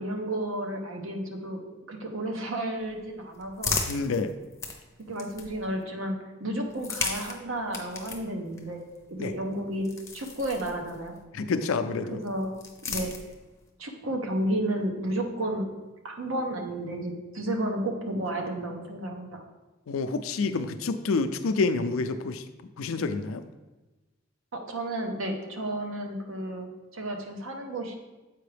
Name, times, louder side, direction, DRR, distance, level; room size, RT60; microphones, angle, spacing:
voice 1, 0.0-3.8 5.1-8.8 9.1-9.9 10.1-11.1 12.1-12.5 12.8-13.1 13.8-15.7 16.0-19.4 24.5-27.9, right 1 dB, 85° right, 3 dB, 0.9 m, -32 dB
sound 1, 2.8-5.8 6.6-11.2 12.2-13.7, left 4 dB, 15° left, 0.5 m, -37 dB
voice 2, 3.9-4.3 9.2-9.3 11.3-12.2 19.9-22.4 22.8-23.4, left 4 dB, 90° left, 10 dB, 0.4 m, -28 dB
7.6 x 4.7 x 3.3 m, 1.1 s
head